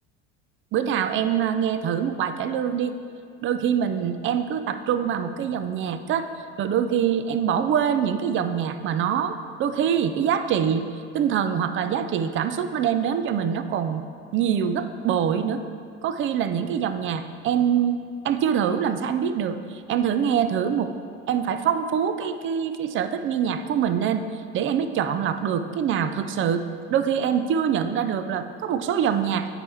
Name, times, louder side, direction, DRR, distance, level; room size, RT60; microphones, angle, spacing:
voice 1, 0.7-2.9 3.4-6.3 6.6-10.9 11.1-14.0 14.3-15.6 16.0-18.0 18.2-20.9 21.3-24.2 24.5-26.6 26.9-29.5, right 8 dB, 35° right, 10 dB, 0.4 m, -24 dB
8.8 x 4.6 x 3.3 m, 2.4 s
supercardioid pair, 100°, 34 cm